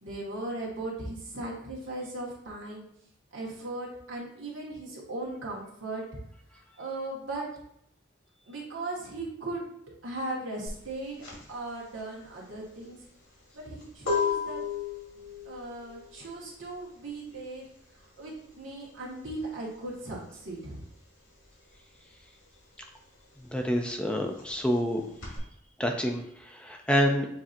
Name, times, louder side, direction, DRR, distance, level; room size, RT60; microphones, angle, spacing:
voice 1, 0.0-2.8 3.3-6.0 6.8-7.4 8.5-9.7 10.0-13.0 13.5-14.6 15.4-17.7 18.2-20.8, right 2 dB, 90° right, -3 dB, 1.5 m, -37 dB
sound 1, 10.7-20.9 21.2-25.4, left 5 dB, 90° left, 1.8 m, -35 dB
voice 2, 23.5-25.0 25.8-27.3, equal, 5° left, 3 dB, 0.4 m, -27 dB
7.1 x 2.8 x 2.5 m, 0.72 s
head